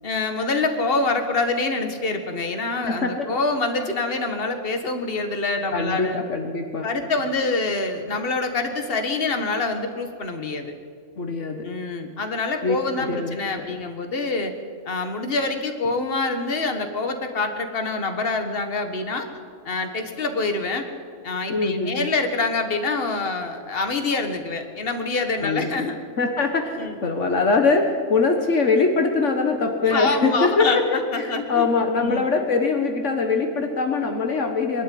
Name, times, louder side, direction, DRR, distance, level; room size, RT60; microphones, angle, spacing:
voice 1, 0.0-6.2 6.8-10.7 11.6-14.5 14.9-19.3 19.7-20.9 21.2-26.0 26.8-26.9 29.9-31.7 32.0-32.3, left 3 dB, 45° left, 6 dB, 1.9 m, -26 dB
voice 2, 2.9-3.3 5.7-6.9 11.2-11.7 12.6-13.8 21.5-22.1 25.4-25.7 26.2-34.8, left 4 dB, 65° left, 4 dB, 1.8 m, -23 dB
22.5 x 12.0 x 9.5 m, 2.1 s
omnidirectional pair, 1.4 m